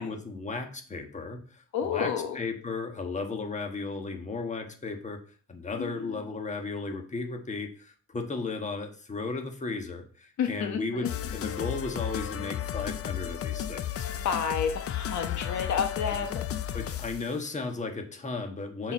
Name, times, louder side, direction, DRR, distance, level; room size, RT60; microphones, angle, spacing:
voice 1, 0.0-2.1 2.3-5.2 5.5-14.0 16.7-18.9, left 3 dB, 25° left, 4 dB, 1.4 m, -35 dB
voice 2, 1.7-2.4 5.8-6.2 10.4-11.3 14.2-16.9 18.8-18.9, left 7 dB, 70° left, 6 dB, 1.2 m, -31 dB
sound 1, 11.0-17.3, left 10 dB, 50° left, 0.6 m, -34 dB
7.0 x 4.4 x 5.1 m, 0.42 s
cardioid pair, 90°, 30 cm